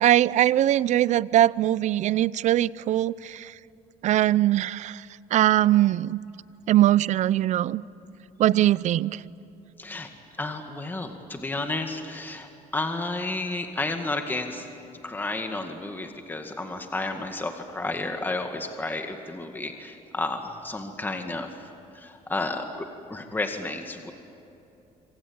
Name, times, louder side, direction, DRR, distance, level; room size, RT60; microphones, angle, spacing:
voice 1, 0.0-3.5 4.0-5.0 5.3-6.2 6.7-7.8 8.4-9.2, right 13 dB, 60° right, 0.6 m, -21 dB
voice 2, 9.8-10.1 10.4-12.5 12.7-14.7 15.0-21.5 22.0-22.7 23.1-24.1, left 2 dB, 15° left, 2.0 m, -31 dB
27.0 x 25.5 x 8.8 m
cardioid pair, 130°, 14 cm